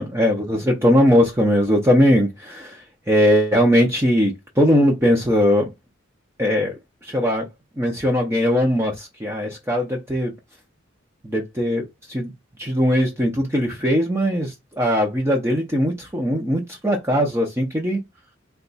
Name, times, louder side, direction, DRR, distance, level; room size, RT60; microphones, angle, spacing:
voice 1, 0.0-2.8 3.1-5.7 6.4-6.8 7.0-7.5 7.8-10.3 11.2-11.8 12.1-12.3 12.6-18.0, equal, 15° right, 0.6 m, -20 dB
3.9 x 2.3 x 3.9 m
head